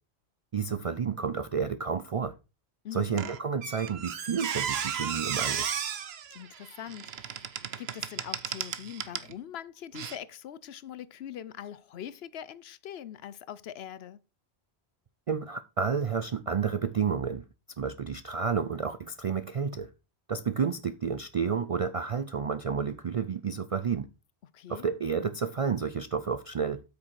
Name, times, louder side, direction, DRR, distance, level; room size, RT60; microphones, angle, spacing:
voice 1, 0.5-2.3 2.9-5.7 15.3-17.4 17.8-19.9 20.3-24.1 24.7-26.8, right 6 dB, 55° right, 0.4 m, -30 dB
voice 2, 2.8-3.3 6.3-7.5 7.8-14.2 24.5-24.8, left 10 dB, 70° left, 0.8 m, -42 dB
Squeak, 3.2-9.3 9.9-10.2, right 8 dB, 70° right, 1.0 m, -34 dB
8.5 x 6.3 x 4.6 m
omnidirectional pair, 1.1 m